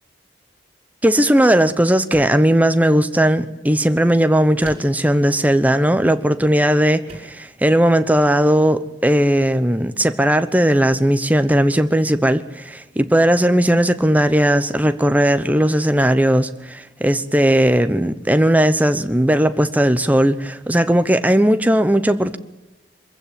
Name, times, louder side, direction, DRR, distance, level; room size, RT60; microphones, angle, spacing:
voice 1, 1.0-22.4, right 1 dB, 10° right, 10 dB, 0.9 m, -17 dB
sound 1, 2.1-2.5 4.6-5.1 6.4-6.5 7.1-7.4, right 1 dB, 35° right, 5.3 m, -39 dB
24.0 x 15.5 x 9.1 m, 1.1 s
head